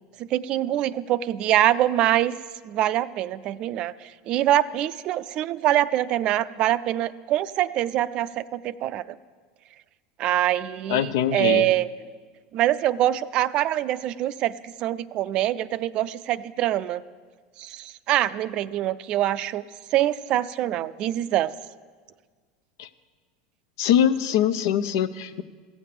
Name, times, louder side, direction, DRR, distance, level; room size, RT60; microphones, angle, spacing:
voice 1, 0.3-2.3 2.7-3.9 4.3-9.0 10.2-11.9 12.5-14.5 14.8-17.0 17.6-19.6 19.9-21.5, right 13 dB, 50° right, 15 dB, 0.4 m, -24 dB
voice 2, 10.9-11.7 22.8-22.9 23.8-25.4, left 10 dB, 75° left, 13 dB, 0.6 m, -23 dB
15.5 x 7.2 x 6.7 m, 1.5 s
supercardioid pair, 115°, 2 cm